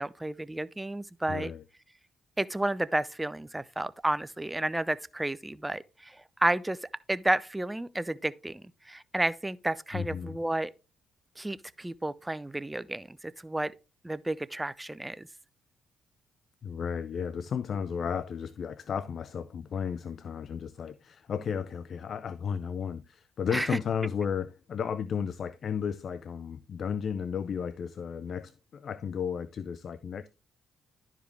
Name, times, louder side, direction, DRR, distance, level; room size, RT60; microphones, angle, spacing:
voice 1, 0.0-1.5 2.4-10.7 11.4-13.7 14.0-15.3 23.5-23.8, right 1 dB, 15° right, 0.5 m, -31 dB
voice 2, 1.3-1.6 9.9-10.4 16.6-30.3, left 7 dB, 55° left, 0.4 m, -34 dB
11.5 x 5.0 x 3.4 m
hypercardioid pair, 45°, 0 cm